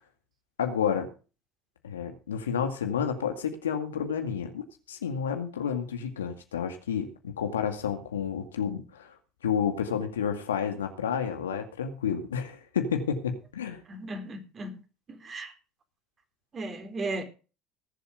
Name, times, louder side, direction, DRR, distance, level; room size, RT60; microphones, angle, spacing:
voice 1, 0.6-1.1 1.8-4.6 4.9-9.2 9.4-13.8, left 7 dB, 85° left, 2.1 m, -30 dB
voice 2, 13.9-14.8 15.1-15.5 16.5-17.2, right 2 dB, 35° right, 4.0 m, -36 dB
19.5 x 7.5 x 5.1 m
hypercardioid pair, 70°, 0 cm